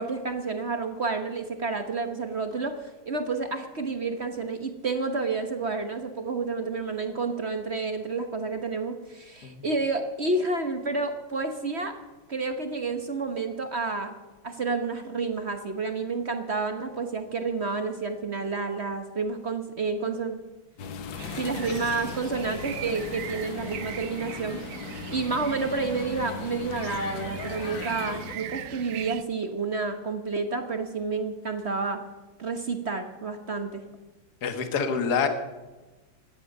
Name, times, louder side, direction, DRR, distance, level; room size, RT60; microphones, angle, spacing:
voice 1, 0.0-12.0 12.3-14.2 14.4-20.4 21.4-24.6 25.1-32.0 32.4-33.8, right 4 dB, 40° right, 7 dB, 1.0 m, -30 dB
sound 1, 20.8-28.3, left 6 dB, 65° left, 1.8 m, -38 dB
sound 2, 21.2-29.2, right 10 dB, 90° right, 0.8 m, -39 dB
voice 2, 34.4-35.3, left 6 dB, 50° left, 7 dB, 1.9 m, -26 dB
16.5 x 11.5 x 6.6 m, 1.2 s
omnidirectional pair, 2.4 m